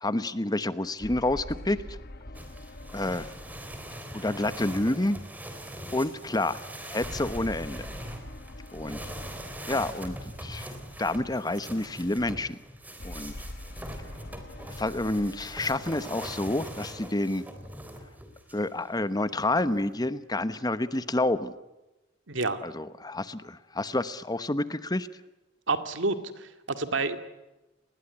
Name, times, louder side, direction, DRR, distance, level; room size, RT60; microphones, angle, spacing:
voice 1, 0.0-2.0 2.9-3.3 4.1-5.2 5.9-6.6 6.9-7.9 8.7-9.0 9.7-10.7 11.0-12.6 13.0-13.3 14.8-17.4 18.5-21.5 22.6-25.1, left 2 dB, 20° left, 13 dB, 1.0 m, -29 dB
sound 1, 1.0-5.6 7.0-11.4 13.0-17.6, left 1 dB, 55° left, 1.3 m, -45 dB
sound 2, 2.3-18.7 19.4-20.1, right 1 dB, 10° right, 3.7 m, -42 dB
voice 2, 22.3-22.6 25.7-27.2, right 3 dB, 80° right, 9 dB, 2.2 m, -29 dB
29.5 x 20.5 x 9.9 m, 1.0 s
head